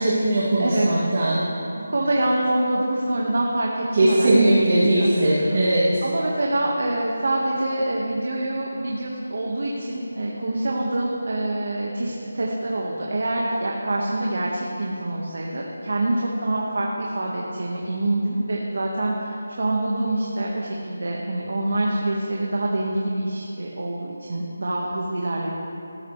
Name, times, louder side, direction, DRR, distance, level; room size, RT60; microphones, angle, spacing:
voice 1, 0.0-1.4 3.9-6.0, right 1 dB, 35° right, -9 dB, 2.4 m, -19 dB
voice 2, 1.7-5.6 6.0-25.5, right 1 dB, 50° right, -2 dB, 1.5 m, -26 dB
18.0 x 14.5 x 3.3 m, 2.8 s
figure-of-eight pair, 180°, 0 cm